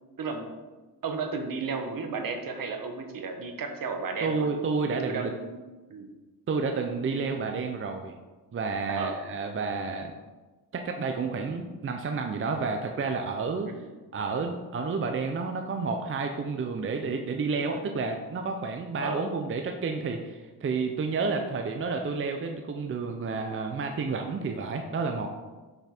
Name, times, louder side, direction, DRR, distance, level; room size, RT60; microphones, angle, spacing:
voice 1, 0.2-0.5 1.0-4.5 5.1-5.6 5.9-6.1 8.9-9.2 19.0-19.2, right 4 dB, 55° right, 5 dB, 1.0 m, -33 dB
voice 2, 4.2-5.3 6.5-8.1 8.5-10.2 10.7-13.7 14.1-25.3, right 4 dB, 30° right, 4 dB, 0.5 m, -30 dB
5.9 x 5.6 x 4.3 m, 1.2 s
cardioid pair, 115°, 39 cm